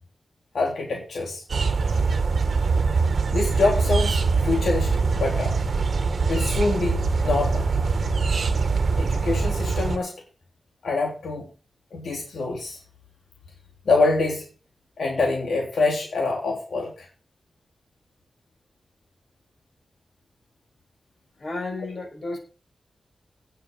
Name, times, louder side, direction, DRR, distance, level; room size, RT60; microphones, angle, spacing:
voice 1, 0.5-1.4 3.3-5.6 6.3-7.7 9.0-10.2 10.8-11.5 11.9-12.8 13.9-14.5 15.0-17.1, left 3 dB, 75° left, 0 dB, 3.4 m, -25 dB
sound 1, 1.5-10.0, right 4 dB, 55° right, 1.5 m, -23 dB
voice 2, 21.4-22.4, left 2 dB, 40° left, 2 dB, 5.9 m, -32 dB
17.5 x 6.9 x 5.5 m, 0.34 s
wide cardioid pair, 160°, 0 cm